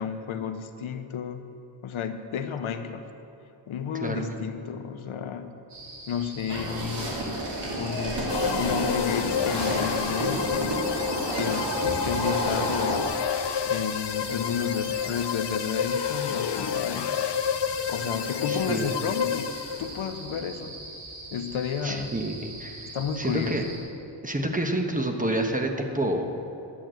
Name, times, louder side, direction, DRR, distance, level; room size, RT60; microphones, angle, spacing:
voice 1, 0.0-1.4 1.8-3.1 3.7-5.5 6.1-7.2 7.7-13.1 13.7-17.1 17.9-20.7 21.3-22.1 22.8-23.6, left 7 dB, 80° left, 8 dB, 0.9 m, -32 dB
sound 1, 5.7-23.8, right 2 dB, 85° right, 3.1 m, -42 dB
sound 2, 6.5-13.0, right 1 dB, 55° right, 3.0 m, -30 dB
sound 3, 8.3-20.1, left 8 dB, 60° left, 0.6 m, -30 dB
voice 2, 18.5-18.9 21.8-23.6 24.2-26.3, right 1 dB, 15° right, 3 dB, 1.1 m, -28 dB
11.5 x 8.3 x 7.7 m, 2.9 s
wide cardioid pair, 105°, 48 cm